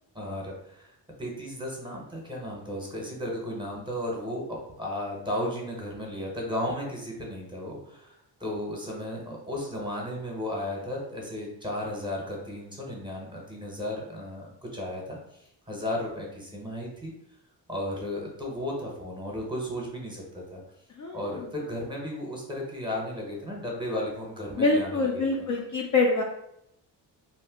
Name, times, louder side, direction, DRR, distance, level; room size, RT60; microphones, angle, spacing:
voice 1, 0.1-0.9 1.2-15.2 15.7-17.1 17.7-20.6 21.1-25.2, left 1 dB, 10° right, -2 dB, 0.8 m, -34 dB
voice 2, 20.9-21.5 24.6-26.2, left 3 dB, 45° left, -1 dB, 0.5 m, -25 dB
2.6 x 2.1 x 3.5 m, 0.78 s
cardioid pair, 100°, 44 cm